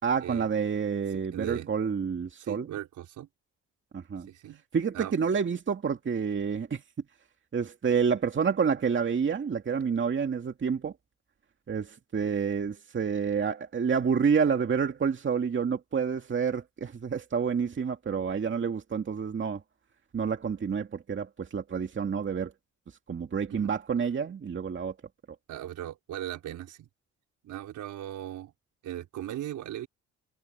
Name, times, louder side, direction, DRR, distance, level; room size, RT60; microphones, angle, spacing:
voice 1, 0.0-2.7 3.9-4.3 4.7-6.8 7.5-10.9 11.7-19.6 20.1-22.5 23.1-24.9, right 6 dB, 40° right, 2.3 m, -28 dB
voice 2, 1.1-1.7 2.4-3.3 4.3-4.6 4.9-5.1 23.5-23.7 25.5-26.9 27.4-28.5 28.8-29.9, right 12 dB, 80° right, 4.7 m, -38 dB
cardioid pair, 90°, 30 cm